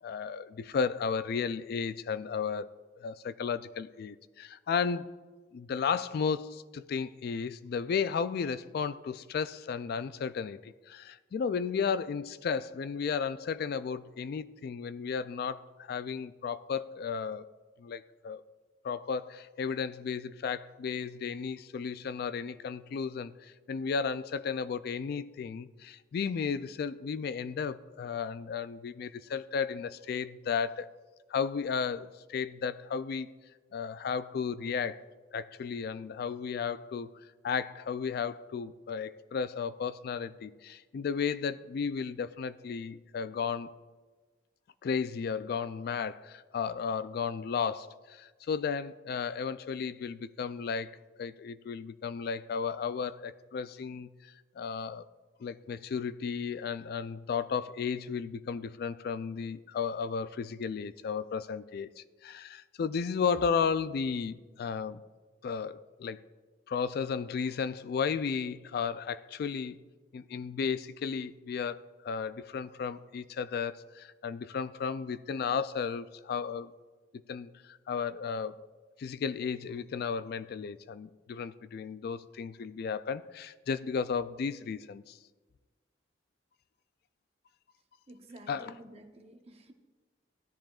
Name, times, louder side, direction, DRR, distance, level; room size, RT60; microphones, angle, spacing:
voice 1, 0.0-2.7 3.0-5.1 5.5-17.4 17.8-18.4 18.8-31.0 31.3-33.3 33.7-35.0 35.3-37.1 37.4-43.7 44.8-50.9 51.2-55.1 55.4-65.0 65.4-66.2 66.7-69.8 70.1-76.7 77.1-78.6 79.0-85.2 88.5-88.7, left 6 dB, 60° left, 15 dB, 0.3 m, -34 dB
voice 2, 88.1-89.7, right 1 dB, 35° right, 5 dB, 0.9 m, -51 dB
16.0 x 10.0 x 2.4 m, 1.4 s
head